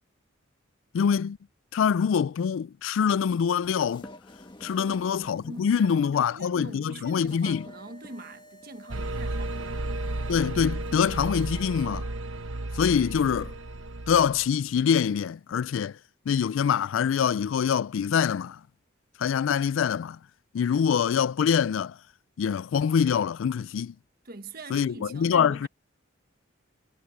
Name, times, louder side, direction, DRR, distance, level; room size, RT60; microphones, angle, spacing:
voice 1, 0.9-1.4 1.7-4.1 4.6-7.6 10.3-12.1 12.7-13.5 14.1-16.0 16.3-18.6 19.2-20.2 20.5-22.0 22.4-23.9 24.7-25.7, left 7 dB, 75° left, 0.3 m, -25 dB
sound 1, 3.3-11.6, left 1 dB, 25° left, 1.4 m, -49 dB
voice 2, 4.7-5.0 5.4-9.9 24.2-25.7, right 2 dB, 50° right, 1.3 m, -43 dB
sound 2, 8.9-14.6, right 2 dB, 85° right, 1.0 m, -33 dB
head